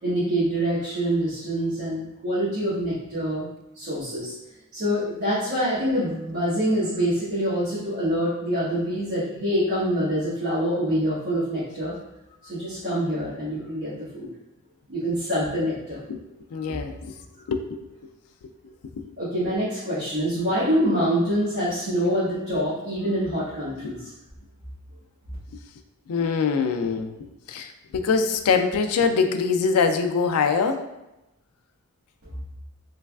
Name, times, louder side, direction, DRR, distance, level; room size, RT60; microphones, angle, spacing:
voice 1, 0.0-3.4 3.7-4.3 4.7-11.9 12.4-14.3 14.9-16.0 19.2-24.1, equal, 45° right, -13 dB, 1.1 m, -25 dB
voice 2, 16.5-17.0 17.5-17.8 18.4-18.5 18.9-19.1 23.8-23.9 26.1-27.1 27.5-30.9, left 5 dB, 90° left, 7 dB, 0.4 m, -23 dB
3.3 x 3.1 x 2.3 m, 0.94 s
head